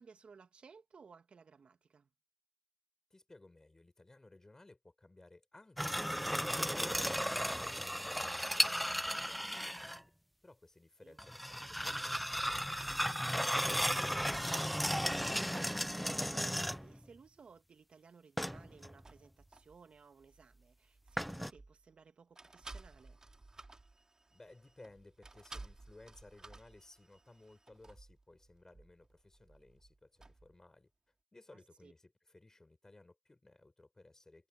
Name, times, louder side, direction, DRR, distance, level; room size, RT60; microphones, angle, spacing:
voice 1, 0.0-2.1 11.0-11.2 15.8-23.2 31.8-31.9, right 5 dB, 55° right, 2.2 m, -60 dB
voice 2, 3.1-10.1 10.4-15.2 24.3-30.9 31.3-34.5, left 2 dB, 20° left, 6.1 m, -60 dB
sound 1, 5.8-10.0 11.2-17.0 18.4-18.9 21.2-21.5, equal, ahead, 0.4 m, -35 dB
sound 2, 12.3-16.3 16.5-16.8 18.7-22.0 22.4-30.6, right 2 dB, 25° right, 3.7 m, -56 dB
cardioid pair, 65°, 2 cm